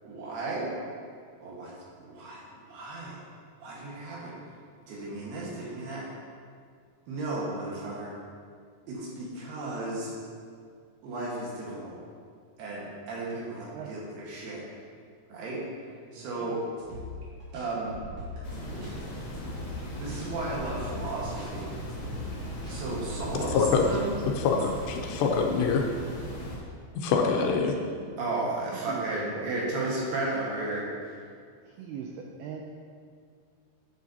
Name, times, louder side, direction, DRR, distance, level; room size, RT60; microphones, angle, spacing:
voice 1, 0.0-0.7 1.4-1.7 2.0-3.2 3.6-4.3 4.9-6.1 7.1-8.1 8.9-10.2 11.0-11.9 12.6-14.6 15.3-15.6 16.1-16.6 17.5-17.9 18.7-18.9 19.9-21.7 22.7-24.1 28.2-30.9, right 2 dB, 65° right, -5 dB, 3.3 m, -34 dB
voice 2, 16.1-16.6 27.4-27.5 28.7-29.0 29.3-29.5 31.7-32.6, right 8 dB, 85° right, -1 dB, 2.2 m, -40 dB
sound 1, 16.8-24.0, left 2 dB, 45° right, 2.9 m, -41 dB
sound 2, 18.4-26.6, equal, 40° left, 1.9 m, -38 dB
voice 3, 23.5-23.9 24.4-25.9 27.0-27.7, left 5 dB, 80° left, 2 dB, 2.7 m, -25 dB
10.5 x 8.2 x 2.8 m, 2.1 s
omnidirectional pair, 5.1 m